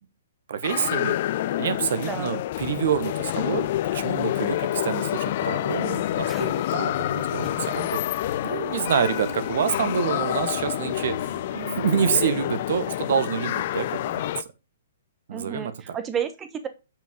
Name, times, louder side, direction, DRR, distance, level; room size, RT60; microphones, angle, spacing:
voice 1, 0.5-1.1 1.6-8.0 8.4-11.3 11.8-14.2 15.3-16.0, right 7 dB, 60° right, 1.2 m, -27 dB
sound 1, 0.6-14.4, left 13 dB, 50° left, 0.5 m, -28 dB
voice 2, 2.0-2.4 15.3-16.7, right 8 dB, 20° right, 1.2 m, -31 dB
sound 2, 6.2-6.7 7.4-8.0 9.0-9.6, left 1 dB, ahead, 0.8 m, -46 dB
sound 3, 6.8-12.6, equal, 85° right, 2.1 m, -39 dB
8.9 x 5.2 x 3.7 m
hypercardioid pair, 125°, 0 cm